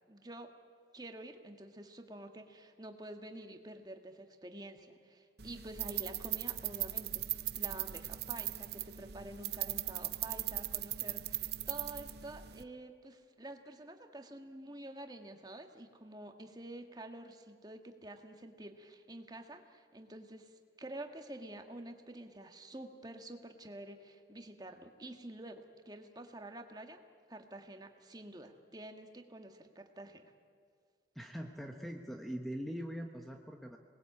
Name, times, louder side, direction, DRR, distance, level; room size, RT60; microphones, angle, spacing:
voice 1, 0.1-0.5 0.9-27.0 27.3-30.3, right 1 dB, 20° right, 5 dB, 1.6 m, -49 dB
sound 1, 5.4-12.6, right 14 dB, 65° right, 0.7 m, -39 dB
voice 2, 31.1-33.8, equal, ahead, 2 dB, 1.0 m, -42 dB
27.0 x 20.0 x 8.6 m, 2.1 s
head